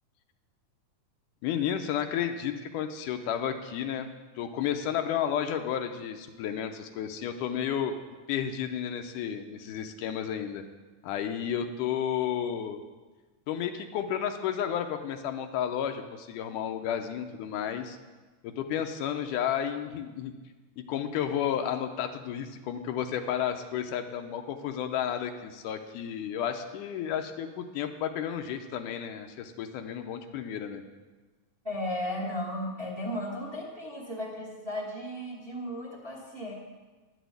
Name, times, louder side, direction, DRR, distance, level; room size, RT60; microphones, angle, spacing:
voice 1, 1.4-4.1 4.4-7.9 8.3-10.6 11.0-12.8 13.5-18.0 18.4-20.3 20.8-30.8, left 9 dB, 80° left, 6 dB, 2.2 m, -32 dB
voice 2, 31.6-36.5, left 1 dB, 25° right, -3 dB, 1.2 m, -35 dB
11.0 x 6.3 x 8.1 m, 1.3 s
omnidirectional pair, 3.7 m